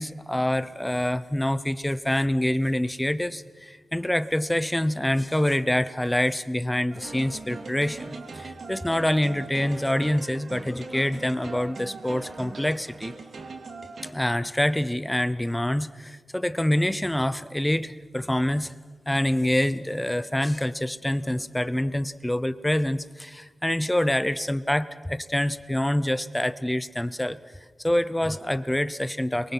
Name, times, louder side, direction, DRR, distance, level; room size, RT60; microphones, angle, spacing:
voice 1, 0.0-13.1 14.1-18.7 19.1-27.4 27.8-29.5, left 1 dB, 10° left, 15 dB, 0.8 m, -26 dB
sound 1, 6.9-14.1, right 3 dB, 60° right, 2.5 m, -40 dB
29.5 x 23.5 x 5.7 m, 1.4 s
wide cardioid pair, 170°, 0 cm